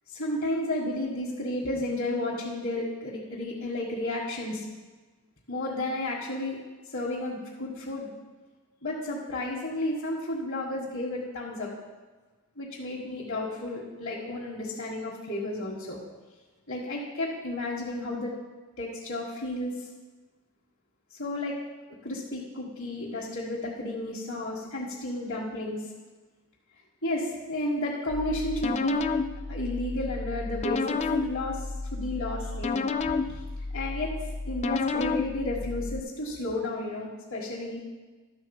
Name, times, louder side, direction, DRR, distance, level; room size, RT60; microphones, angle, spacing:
voice 1, 0.1-4.6 5.5-6.6 6.9-8.1 8.8-11.7 12.6-16.0 16.7-18.3 18.8-19.7 21.2-21.6 22.0-25.9 27.0-29.1 29.5-33.4 33.7-34.1 34.5-37.8, left 1 dB, 60° left, -6 dB, 1.7 m, -32 dB
sound 1, 28.1-36.0, left 4 dB, 30° left, 0.3 m, -31 dB
12.0 x 4.1 x 7.1 m, 1.3 s
head